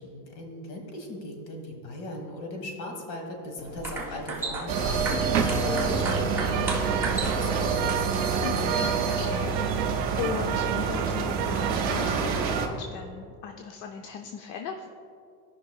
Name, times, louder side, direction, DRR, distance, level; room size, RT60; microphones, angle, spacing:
voice 1, 0.0-8.2, left 1 dB, 60° left, 2 dB, 1.8 m, -39 dB
sound 1, 3.6-8.9, right 2 dB, 5° right, 0.9 m, -35 dB
sound 2, 4.7-12.7, right 5 dB, 20° right, 0.3 m, -27 dB
sound 3, 6.5-11.9, right 13 dB, 80° right, 0.6 m, -34 dB
voice 2, 8.4-14.9, left 7 dB, 80° left, 4 dB, 0.7 m, -38 dB
15.0 x 5.6 x 2.4 m, 2.4 s
supercardioid pair, 150°, 49 cm